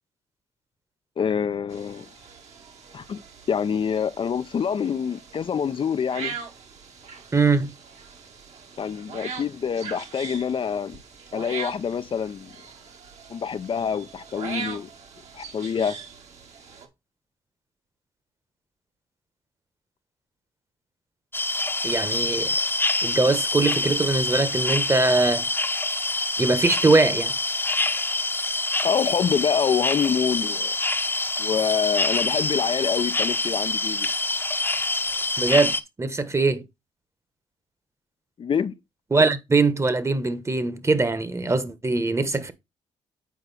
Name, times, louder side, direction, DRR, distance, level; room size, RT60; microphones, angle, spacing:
voice 1, 1.2-2.1 2.9-3.2 3.5-6.4 8.8-11.0 11.3-12.5 13.3-14.9 15.3-16.0 28.8-30.7 31.4-34.1 38.4-38.7, left 7 dB, 45° left, 0.5 m, -26 dB
sound 1, 1.7-16.9, right 6 dB, 65° right, 2.0 m, -41 dB
voice 2, 7.3-7.7 21.8-22.5 23.0-25.4 26.4-27.3 35.4-36.6 39.1-42.5, right 3 dB, 20° right, 1.2 m, -22 dB
sound 2, 21.3-35.8, left 2 dB, 15° left, 0.8 m, -26 dB
8.4 x 4.8 x 4.1 m
cardioid pair, 85°, 12 cm